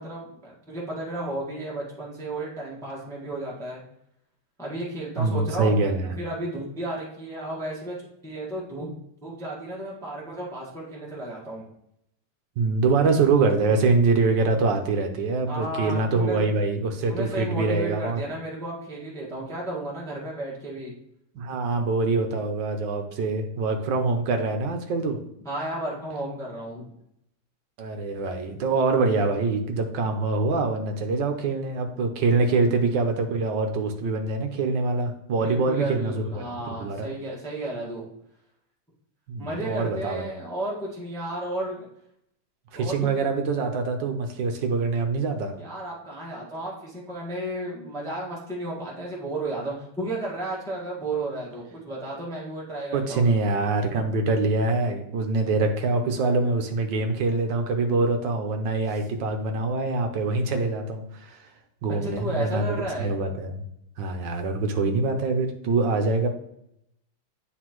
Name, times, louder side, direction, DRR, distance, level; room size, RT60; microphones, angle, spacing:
voice 1, 0.0-3.8 4.6-5.8 6.2-7.9 8.2-8.9 9.2-11.6 15.5-16.5 17.1-20.9 25.4-26.8 35.4-38.1 39.4-41.8 42.7-43.2 45.6-53.3 62.0-63.1, right 1 dB, ahead, -5 dB, 1.2 m, -33 dB
voice 2, 5.2-6.2 12.6-18.2 21.3-25.2 27.8-36.4 36.8-37.1 39.3-40.2 42.7-45.6 52.9-61.4 61.8-62.7 63.0-63.6 64.0-66.3, right 3 dB, 65° right, 5 dB, 1.3 m, -24 dB
9.3 x 4.1 x 3.0 m, 0.76 s
omnidirectional pair, 2.4 m